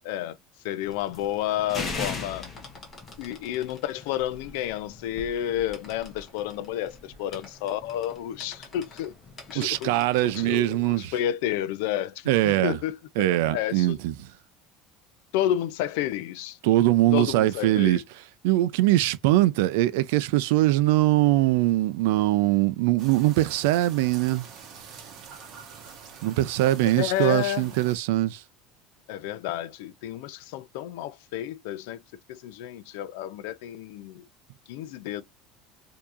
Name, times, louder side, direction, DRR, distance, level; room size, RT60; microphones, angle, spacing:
voice 1, 0.0-0.4 0.6-2.5 3.2-9.1 9.5-9.9 10.4-14.0 15.3-16.6 17.1-18.0 26.9-27.7 29.1-32.0 32.3-34.3 34.7-35.2, left 12 dB, 70° left, 0.4 m, -30 dB
sound 1, 0.8-10.9, left 3 dB, 20° left, 1.1 m, -41 dB
voice 2, 9.5-11.1 12.3-12.8 13.2-14.3 16.6-18.0 18.4-24.5 26.2-28.4, right 16 dB, 75° right, 0.4 m, -22 dB
sound 2, 23.0-28.0, right 6 dB, 40° right, 1.0 m, -46 dB
4.6 x 2.8 x 2.5 m
cardioid pair, 175°, 0 cm